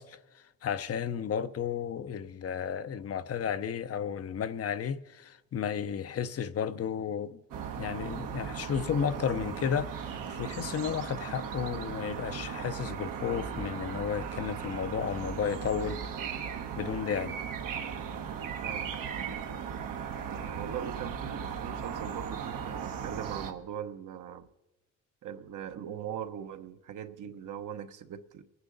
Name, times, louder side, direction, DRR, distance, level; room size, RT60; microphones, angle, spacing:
voice 1, 0.0-7.4 7.8-16.0 16.8-17.3, left 8 dB, 45° left, 0.6 m, -33 dB
sound 1, 7.5-23.5, right 7 dB, 80° right, 1.3 m, -37 dB
voice 2, 18.6-19.0 20.3-24.5 25.2-28.4, right 9 dB, 65° right, 1.0 m, -40 dB
24.5 x 9.7 x 3.9 m
cardioid pair, 100°, 32 cm